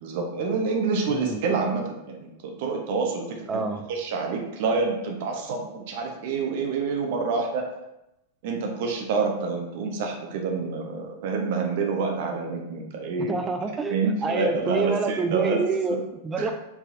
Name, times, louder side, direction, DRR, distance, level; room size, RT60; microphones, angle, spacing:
voice 1, 0.0-7.7 8.4-13.3 13.9-15.6 16.4-16.5, right 4 dB, 50° right, 2 dB, 0.7 m, -27 dB
voice 2, 3.5-3.9 13.3-16.5, right 4 dB, 20° right, 6 dB, 0.5 m, -27 dB
4.8 x 4.0 x 2.6 m, 0.90 s
figure-of-eight pair, 90°, 0 cm